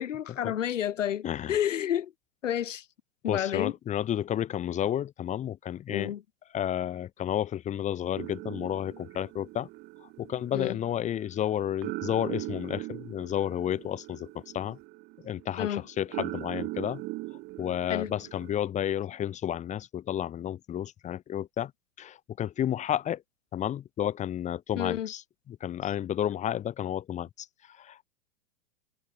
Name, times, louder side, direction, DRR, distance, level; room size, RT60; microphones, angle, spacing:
voice 1, 0.0-2.1 2.4-2.8 3.2-3.7 5.9-6.2 10.5-10.8 15.6-15.8 17.9-18.1 24.8-25.1, left 10 dB, 75° left, 0.8 m, -30 dB
voice 2, 1.2-1.6 3.3-6.1 6.5-9.7 10.2-14.8 15.2-17.0 17.6-21.7 22.0-23.2 23.5-25.2 25.5-27.5 27.8-28.1, left 10 dB, 20° left, 1.0 m, -31 dB
sound 1, 8.2-18.5, right 21 dB, 25° right, 0.8 m, -41 dB
figure-of-eight pair, 105°, 38 cm